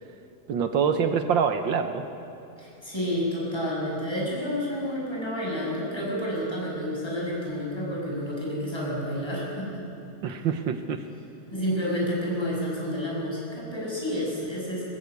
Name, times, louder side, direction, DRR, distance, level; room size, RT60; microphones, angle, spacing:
voice 1, 0.5-2.0 10.2-11.1, right 6 dB, 75° right, 8 dB, 1.7 m, -25 dB
voice 2, 2.6-9.7 11.5-14.9, equal, 10° left, -5 dB, 7.0 m, -30 dB
21.5 x 21.0 x 8.3 m, 2.8 s
omnidirectional pair, 2.1 m